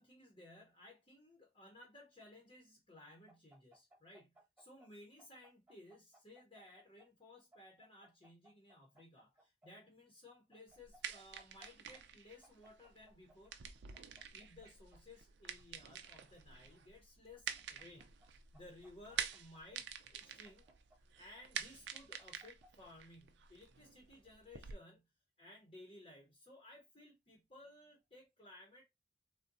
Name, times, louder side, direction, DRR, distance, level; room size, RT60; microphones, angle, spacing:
voice 1, 0.0-13.5 14.3-20.6 21.2-25.1 25.4-28.8, left 1 dB, 30° left, 0.8 m, -58 dB
sound 1, 3.3-4.9 5.2-7.1 7.5-9.7 10.5-11.7 11.9-12.0 12.4-13.4 13.9-15.0 15.6-16.6 17.3-18.3 18.5-19.8 20.4-21.4 21.9-22.9, equal, 10° right, 1.1 m, -66 dB
sound 2, 10.7-24.7, right 8 dB, 65° right, 0.4 m, -48 dB
3.7 x 2.2 x 2.6 m
head